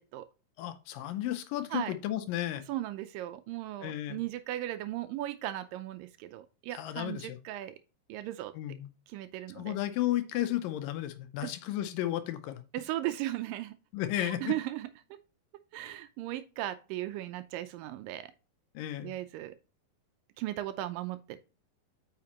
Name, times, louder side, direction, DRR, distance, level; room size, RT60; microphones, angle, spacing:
voice 1, 0.6-2.6 3.8-4.2 6.7-7.4 8.6-8.9 9.6-12.6 13.9-14.5 18.8-19.2, left 13 dB, 80° left, 2.3 m, -33 dB
voice 2, 2.7-7.8 8.1-8.5 9.1-9.7 11.4-11.5 12.7-13.8 14.1-14.9 15.7-18.3 19.0-19.6 20.4-21.4, right 14 dB, 80° right, 2.1 m, -37 dB
8.6 x 5.8 x 2.9 m
omnidirectional pair, 4.2 m